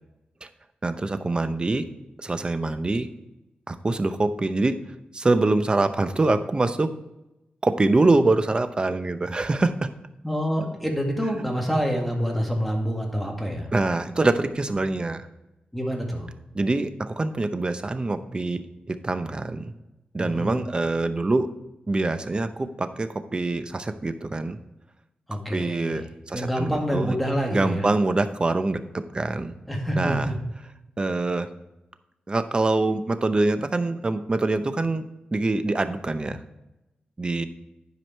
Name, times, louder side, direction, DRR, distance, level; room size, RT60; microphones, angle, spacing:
voice 1, 0.8-1.9 2.2-3.1 3.7-4.8 5.1-6.9 7.6-9.9 13.7-15.3 16.5-18.6 18.9-19.7 20.1-21.5 21.9-24.6 25.5-27.2 27.5-29.5 30.0-30.3 31.0-31.5 32.3-35.0 35.3-36.4 37.2-37.5, right 2 dB, 30° right, 10 dB, 0.7 m, -24 dB
voice 2, 10.2-13.7 15.7-16.3 20.2-20.6 25.3-26.0 26.3-27.8 29.7-30.4, equal, ahead, 0 dB, 2.0 m, -27 dB
11.0 x 4.9 x 4.5 m, 0.94 s
wide cardioid pair, 90°, 3 cm